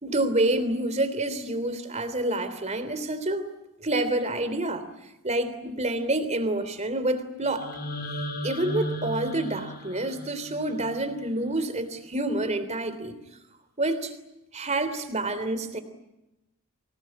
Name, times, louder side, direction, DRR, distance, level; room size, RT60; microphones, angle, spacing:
voice 1, 0.0-3.5 3.8-4.9 5.2-7.7 8.4-13.1 13.8-14.1 14.5-15.8, right 1 dB, 30° right, 11 dB, 3.2 m, -28 dB
sound 1, 7.4-11.5, equal, 45° left, 6.0 m, -36 dB
25.5 x 19.5 x 9.8 m, 0.96 s
head